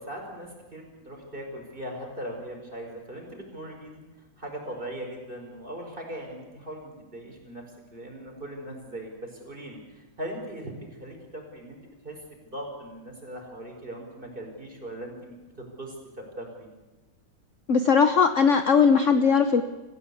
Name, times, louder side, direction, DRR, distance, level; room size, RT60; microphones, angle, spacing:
voice 1, 0.0-4.0 4.4-7.6 7.9-12.2 12.5-15.9 16.4-16.7, right 1 dB, 25° right, 1 dB, 5.1 m, -39 dB
voice 2, 17.7-19.6, left 6 dB, 50° left, 9 dB, 1.1 m, -19 dB
25.0 x 15.5 x 8.5 m, 1.1 s
omnidirectional pair, 2.1 m